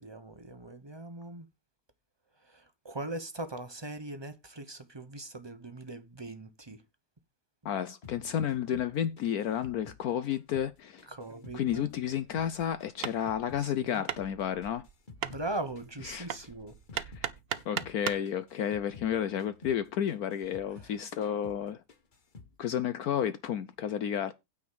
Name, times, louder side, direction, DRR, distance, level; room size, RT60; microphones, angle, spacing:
voice 1, 0.0-1.5 2.5-6.8 11.1-11.9 13.6-14.0 15.2-16.7, right 2 dB, 20° right, 0.8 m, -40 dB
voice 2, 7.6-11.1 11.5-14.9 16.0-16.3 16.9-17.3 17.7-21.8 22.6-24.3, left 9 dB, 70° left, 1.1 m, -31 dB
sound 1, 8.0-10.7 11.0-13.7 13.9-17.3 17.6-18.0 18.2-21.0 21.2-21.6 21.9-22.5, left 4 dB, 35° left, 1.1 m, -52 dB
Hammer, 12.3-18.3, right 8 dB, 55° right, 0.7 m, -39 dB
9.4 x 4.9 x 7.0 m
omnidirectional pair, 1.8 m